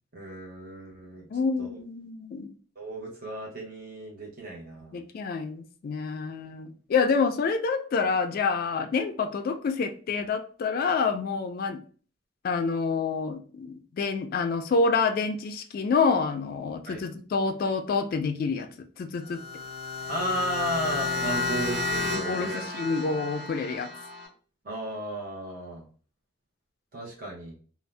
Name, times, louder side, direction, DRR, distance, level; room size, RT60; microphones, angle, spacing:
voice 1, 0.1-1.2 1.6-1.7 2.8-5.0 16.9-17.0 20.1-22.6 24.6-25.8 26.9-27.5, right 1 dB, 50° right, -2 dB, 0.7 m, -34 dB
voice 2, 1.3-2.5 4.9-11.8 12.4-18.7 19.0-19.4 22.1-23.9, left 4 dB, 50° left, 7 dB, 0.3 m, -27 dB
sound 1, 19.2-24.3, left 3 dB, 65° right, 1.4 m, -32 dB
2.5 x 2.0 x 3.1 m, 0.41 s
head